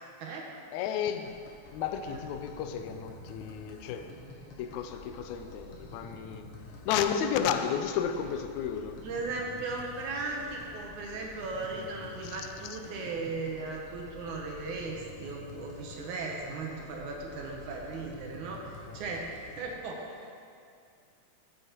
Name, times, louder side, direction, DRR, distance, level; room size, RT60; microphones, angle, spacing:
voice 1, 0.7-4.1 4.6-6.5 6.9-9.0 12.2-12.8 18.9-19.0, left 8 dB, 80° left, 8 dB, 1.8 m, -33 dB
sound 1, 1.2-19.8, left 2 dB, 60° left, 1.6 m, -48 dB
voice 2, 9.0-20.4, right 3 dB, 75° right, 0 dB, 2.2 m, -37 dB
14.0 x 8.1 x 2.9 m, 2.4 s
omnidirectional pair, 3.6 m